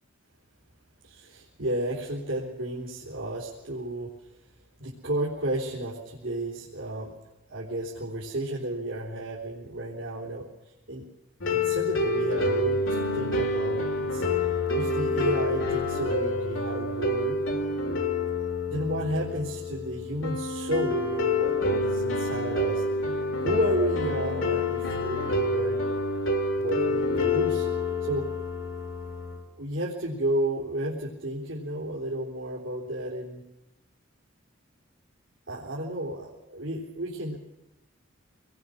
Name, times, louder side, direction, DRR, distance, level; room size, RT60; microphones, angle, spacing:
voice 1, 1.0-4.1 4.8-7.1 7.5-11.1 11.5-14.3 14.7-17.3 18.7-22.9 23.4-25.9 26.6-27.7 28.0-28.2 29.6-33.4 35.5-37.4, right 1 dB, 80° right, -4 dB, 3.6 m, -32 dB
sound 1, 11.4-29.4, left 2 dB, 85° left, 3.2 m, -27 dB
27.0 x 20.5 x 6.5 m, 0.96 s
head